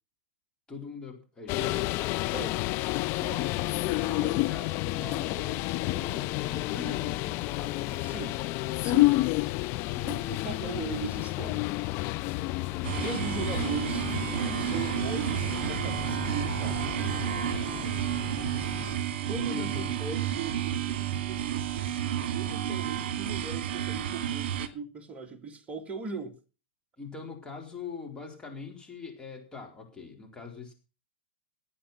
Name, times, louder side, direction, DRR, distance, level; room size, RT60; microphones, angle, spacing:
voice 1, 0.7-1.9 3.2-8.0 18.9-19.9 27.0-30.7, left 5 dB, 15° left, 4.3 m, -42 dB
sound 1, 1.5-18.9, left 19 dB, 40° left, 0.7 m, -31 dB
voice 2, 2.3-2.6 8.0-8.3 8.8-9.2 10.0-11.7 13.0-14.1 14.6-16.9 19.3-26.4, right 4 dB, 20° right, 2.2 m, -39 dB
sound 2, 12.8-24.7, right 11 dB, 55° right, 2.4 m, -31 dB
18.0 x 8.9 x 6.0 m
hypercardioid pair, 110°, 6 cm